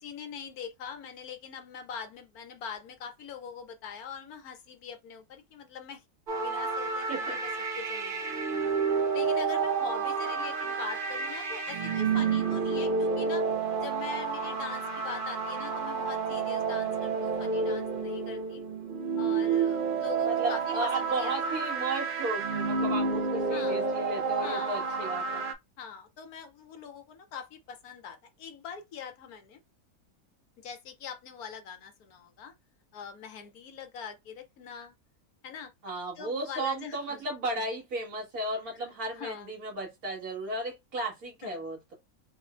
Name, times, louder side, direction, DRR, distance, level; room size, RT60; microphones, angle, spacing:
voice 1, 0.0-6.0 6.4-7.5 7.8-8.5 9.1-13.4 13.8-18.6 19.2-21.6 23.5-24.0 24.4-24.9 25.8-29.6 30.6-32.5 32.9-34.9 35.4-35.7 36.2-37.2 39.1-39.5 41.4-41.6, left 7 dB, 85° left, 1.3 m, -43 dB
sound 1, 6.3-25.5, right 5 dB, 60° right, 0.5 m, -30 dB
voice 2, 20.2-25.4 35.8-41.9, right 2 dB, 80° right, 2.2 m, -34 dB
4.5 x 2.1 x 2.5 m
omnidirectional pair, 1.5 m